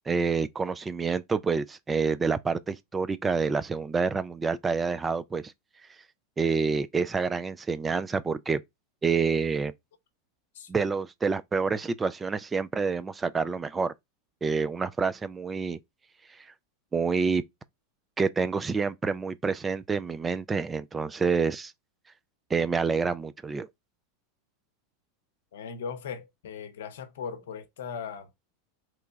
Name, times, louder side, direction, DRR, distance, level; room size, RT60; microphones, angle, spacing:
voice 1, 0.1-5.4 6.4-8.6 9.0-9.7 10.7-13.9 14.4-15.8 16.9-17.4 18.2-21.7 22.5-23.7, right 5 dB, 20° right, 0.3 m, -27 dB
voice 2, 25.5-28.3, left 6 dB, 70° left, 0.7 m, -38 dB
3.1 x 2.2 x 3.8 m
hypercardioid pair, 95°, 0 cm